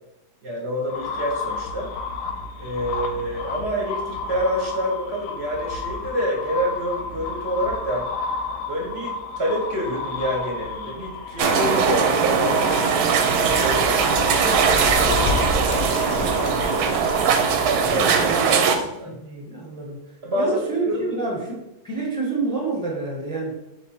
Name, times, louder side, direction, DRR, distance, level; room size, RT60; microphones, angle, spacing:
voice 1, 0.4-1.9 2.6-8.1 8.7-12.6 13.2-16.9 17.5-19.2 20.2-21.1, equal, 50° right, -1 dB, 0.9 m, -28 dB
sound 1, 0.9-18.0, left 4 dB, 85° left, 1.2 m, -31 dB
sound 2, 11.4-18.8, right 6 dB, 75° right, 1.0 m, -20 dB
sound 3, 13.3-18.4, left 1 dB, 50° left, 0.7 m, -36 dB
voice 2, 17.9-20.0 20.3-23.6, right 3 dB, 5° left, -2 dB, 0.7 m, -29 dB
3.5 x 3.2 x 4.2 m, 0.87 s
omnidirectional pair, 1.8 m